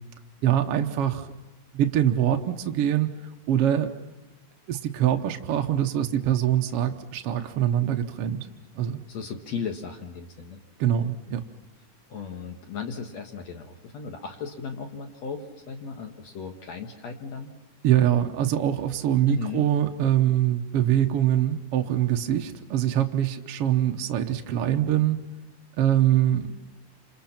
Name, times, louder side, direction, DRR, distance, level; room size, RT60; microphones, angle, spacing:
voice 1, 0.4-1.3 1.7-3.1 3.5-3.9 4.7-8.5 8.7-9.0 10.8-11.4 17.8-25.2 25.8-26.5, right 11 dB, 65° right, 4 dB, 1.5 m, -23 dB
voice 2, 9.1-10.6 12.1-17.5 19.3-19.6, left 5 dB, 55° left, 5 dB, 2.5 m, -35 dB
28.5 x 27.5 x 5.9 m, 1.1 s
omnidirectional pair, 3.9 m